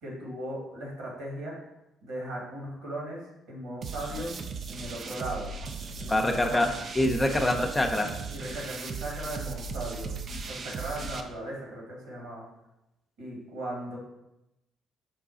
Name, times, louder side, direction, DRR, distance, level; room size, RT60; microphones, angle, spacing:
voice 1, 0.0-1.6 2.0-3.2 3.5-4.3 4.7-5.5 6.0-6.7 8.3-10.1 10.5-12.4 13.2-14.0, right 1 dB, 75° right, -3 dB, 1.5 m, -37 dB
sound 1, 3.8-11.2, right 4 dB, 50° right, 0.4 m, -37 dB
voice 2, 6.1-6.7 7.0-8.1, left 1 dB, 20° left, 4 dB, 0.6 m, -25 dB
4.9 x 2.3 x 3.8 m, 0.88 s
hypercardioid pair, 50°, 0 cm